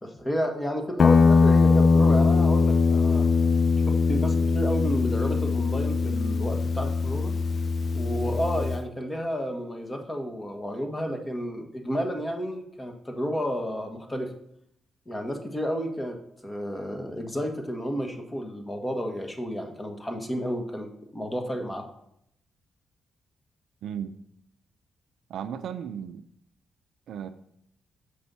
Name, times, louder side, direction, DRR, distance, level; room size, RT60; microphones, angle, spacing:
voice 1, 0.0-3.2 3.9-7.3 7.9-14.3 15.1-21.9, equal, 20° left, 4 dB, 1.4 m, -31 dB
Guitar, 1.0-8.8, left 4 dB, 50° left, 0.3 m, -21 dB
voice 2, 25.3-26.2 27.1-27.3, right 8 dB, 80° right, 10 dB, 0.5 m, -35 dB
6.8 x 5.5 x 4.1 m, 0.74 s
supercardioid pair, 60°, 0 cm